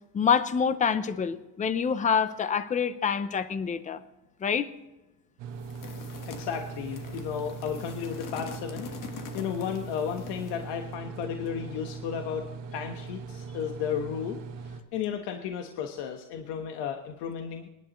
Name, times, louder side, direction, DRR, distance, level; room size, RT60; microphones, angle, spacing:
voice 1, 0.1-4.0 4.4-4.7, left 6 dB, 20° left, 12 dB, 0.6 m, -26 dB
sound 1, 5.4-14.8, right 5 dB, 50° right, 1.2 m, -40 dB
sound 2, 5.6-10.7, left 6 dB, 50° left, 1.5 m, -44 dB
voice 2, 6.3-14.4 14.6-17.7, left 8 dB, 80° left, 4 dB, 1.3 m, -34 dB
26.5 x 10.5 x 3.1 m, 1.1 s
cardioid pair, 175°, 41 cm